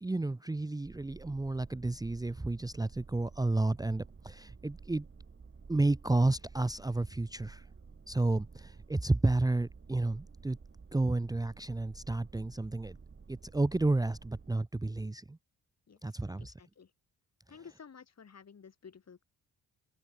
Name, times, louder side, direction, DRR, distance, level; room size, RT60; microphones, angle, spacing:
voice 1, 0.0-5.1 5.7-7.7 8.1-10.6 10.9-13.0 13.3-15.4 16.0-16.5, right 2 dB, 10° right, 0.8 m, -31 dB
sound 1, 0.8-14.6, right 5 dB, 35° right, 4.0 m, -52 dB
voice 2, 16.4-16.9 17.5-19.2, left 6 dB, 45° left, 5.0 m, -53 dB
cardioid pair, 90°, 35 cm